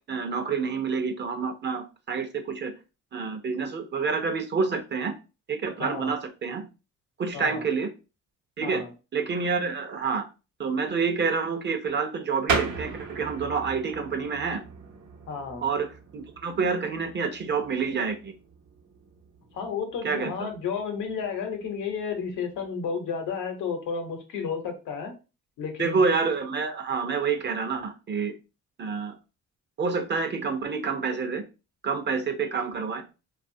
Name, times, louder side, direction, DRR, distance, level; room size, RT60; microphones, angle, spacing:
voice 1, 0.1-2.7 3.1-5.1 5.5-6.7 7.2-7.9 8.6-8.8 9.1-10.2 10.6-14.6 15.6-18.3 20.0-20.3 25.8-28.4 28.8-29.2 29.8-31.4 31.8-33.0, right 5 dB, 35° right, 0.5 m, -28 dB
voice 2, 5.8-6.1 7.3-7.6 8.6-8.9 15.3-15.6 19.5-25.1 25.6-26.0, left 6 dB, 85° left, 0.8 m, -32 dB
sound 1, 12.5-22.7, right 5 dB, 70° right, 0.8 m, -37 dB
2.6 x 2.4 x 2.6 m
cardioid pair, 90°, 30 cm